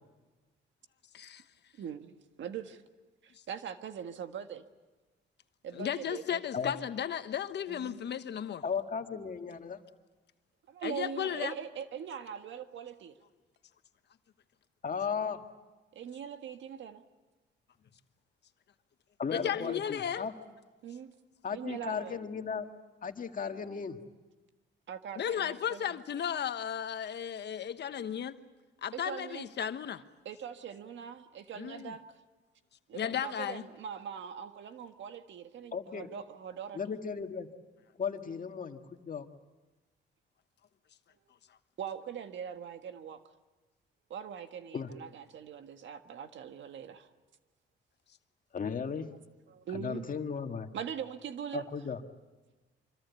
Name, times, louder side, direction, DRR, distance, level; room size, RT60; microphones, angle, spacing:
voice 1, 1.8-2.8 3.2-4.6 5.6-6.4 7.7-8.0 10.7-13.1 15.9-17.0 19.5-19.8 20.8-21.1 21.5-22.2 24.9-26.0 28.9-29.5 30.2-32.2 32.9-36.8 38.1-38.3 41.8-43.2 44.1-47.1 49.5-50.1 50.7-51.7, right 8 dB, 70° right, 8 dB, 1.6 m, -42 dB
voice 2, 5.7-8.6 10.8-11.5 19.3-20.3 25.2-28.4 28.8-30.0 31.5-31.9 32.9-33.6, left 9 dB, 60° left, 10 dB, 1.2 m, -34 dB
voice 3, 8.6-9.8 14.8-15.4 19.2-20.3 21.4-22.7 23.0-24.0 35.7-36.1 36.7-37.5 38.0-39.3 44.7-44.9 48.5-49.1 49.7-50.7 51.5-52.0, left 6 dB, 45° left, 6 dB, 1.9 m, -35 dB
25.5 x 25.0 x 8.4 m, 1.2 s
cardioid pair, 90°, 20 cm